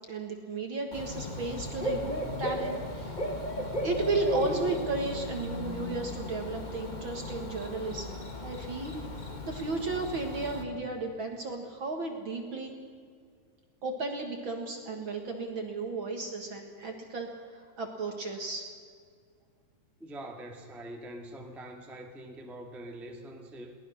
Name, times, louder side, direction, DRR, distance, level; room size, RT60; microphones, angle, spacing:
voice 1, 0.1-3.2 3.8-8.2 8.4-9.0 9.4-12.7 13.8-18.7, right 3 dB, 45° right, 4 dB, 2.0 m, -34 dB
Bird / Cricket, 0.9-10.6, left 1 dB, 25° left, 0.9 m, -36 dB
voice 2, 20.0-23.7, right 1 dB, ahead, 2 dB, 1.3 m, -44 dB
22.5 x 18.5 x 6.5 m, 2.1 s
omnidirectional pair, 3.8 m